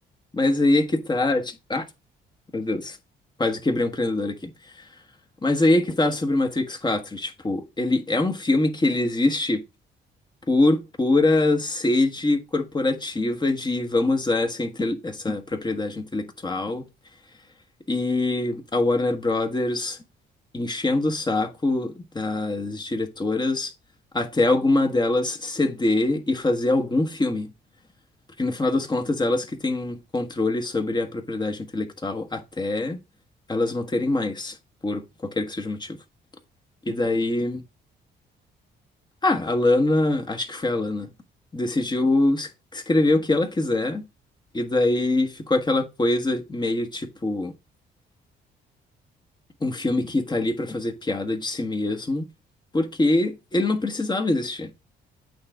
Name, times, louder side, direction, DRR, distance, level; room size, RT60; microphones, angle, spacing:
voice 1, 0.3-1.8 2.5-3.0 3.4-4.5 5.4-9.6 10.5-16.8 17.9-20.0 20.5-23.7 24.1-27.5 28.4-33.0 33.5-34.6 34.8-35.0 35.3-36.0 36.8-37.6 39.2-41.1 41.5-44.1 44.5-47.5 49.6-52.2 52.7-54.7, left 2 dB, 20° left, 1.4 m, -24 dB
8.6 x 3.4 x 4.9 m
cardioid pair, 90°, 20 cm